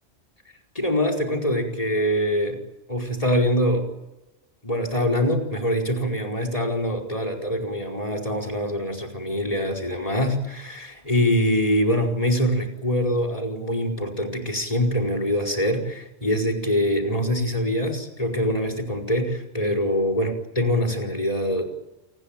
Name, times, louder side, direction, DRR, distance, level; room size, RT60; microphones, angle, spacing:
voice 1, 0.7-2.6 2.9-3.9 4.6-21.6, equal, 30° left, 5 dB, 4.9 m, -24 dB
28.0 x 20.0 x 9.0 m, 0.98 s
omnidirectional pair, 1.2 m